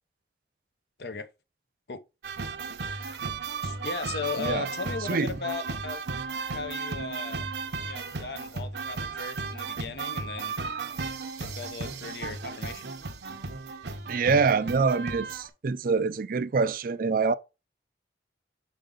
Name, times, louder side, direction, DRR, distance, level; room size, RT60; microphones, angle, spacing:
voice 1, 1.0-1.3 1.9-2.0 3.6-6.0 6.5-7.5 7.9-10.5 11.4-12.9, left 5 dB, 65° left, 0.7 m, -37 dB
sound 1, 2.2-15.5, right 4 dB, 70° right, 0.8 m, -35 dB
voice 2, 14.1-17.3, right 4 dB, 50° right, 0.4 m, -25 dB
5.2 x 4.9 x 3.7 m
head